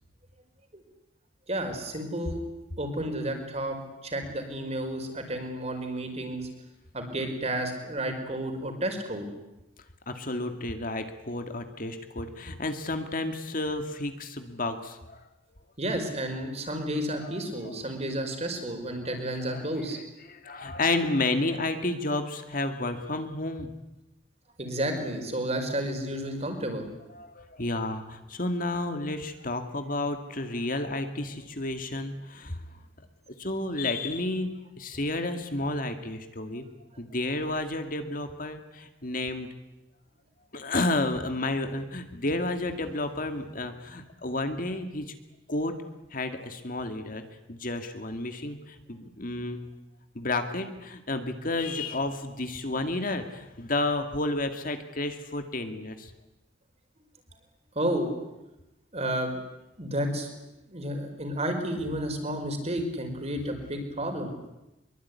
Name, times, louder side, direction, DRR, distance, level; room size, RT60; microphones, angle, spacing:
voice 1, 1.5-2.4 2.8-3.8 4.0-6.5 6.9-9.3 15.8-20.0 24.6-26.9 57.8-58.1 58.9-59.4 59.8-60.3 60.7-64.3, right 1 dB, 35° right, 5 dB, 5.2 m, -31 dB
voice 2, 10.1-15.2 17.2-17.7 19.0-19.6 19.9-20.0 20.3-23.7 27.1-36.7 37.0-39.5 40.5-45.1 45.5-45.8 46.1-47.2 47.5-49.6 50.1-56.1, left 2 dB, 45° left, 7 dB, 2.3 m, -31 dB
24.0 x 23.0 x 9.8 m, 0.97 s
head